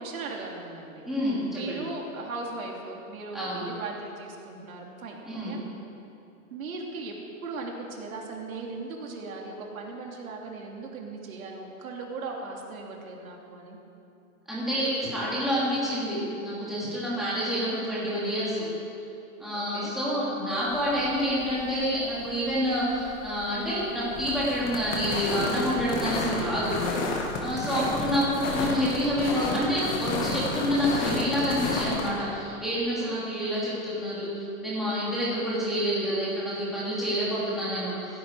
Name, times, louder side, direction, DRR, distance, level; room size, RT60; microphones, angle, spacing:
voice 1, 0.0-1.1 1.5-5.6 6.5-7.1 7.4-13.8 19.5-19.9 27.5-27.8 33.0-33.1, right 3 dB, 75° right, 0 dB, 2.9 m, -38 dB
voice 2, 1.0-1.8 3.3-3.6 5.2-5.5 14.5-18.7 19.4-26.7 27.4-38.2, equal, ahead, -10 dB, 3.1 m, -28 dB
sound 1, 20.7-32.1, left 3 dB, 20° left, 1.5 m, -31 dB
15.5 x 15.0 x 4.8 m, 2.7 s
supercardioid pair, 170°, 42 cm